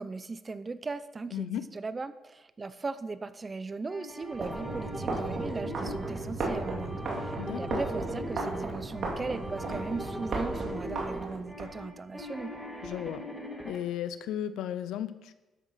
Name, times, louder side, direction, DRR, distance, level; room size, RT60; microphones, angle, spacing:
voice 1, 0.0-12.5, right 3 dB, 30° right, 14 dB, 0.7 m, -38 dB
voice 2, 1.3-1.7 7.4-7.8 12.8-13.3 13.6-15.3, left 10 dB, 85° left, 13 dB, 0.7 m, -35 dB
sound 1, 3.9-13.8, equal, 5° right, 2.6 m, -40 dB
sound 2, 4.3-11.7, right 3 dB, 60° right, 3.2 m, -35 dB
12.5 x 8.0 x 5.8 m, 1.0 s
cardioid pair, 90°, 0 cm